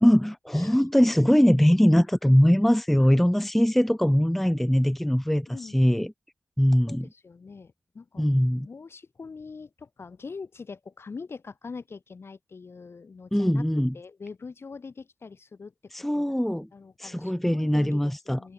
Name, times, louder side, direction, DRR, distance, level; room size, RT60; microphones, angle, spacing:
voice 1, 0.0-6.1 6.6-7.1 8.2-8.7 13.3-13.9 15.9-16.7 17.0-18.4, equal, 5° left, 0.5 m, -21 dB
voice 2, 3.0-3.4 5.5-5.8 6.9-8.3 8.6-13.6 13.9-16.4 16.7-18.5, left 4 dB, 60° left, 4.2 m, -43 dB
cardioid pair, 45°, 5 cm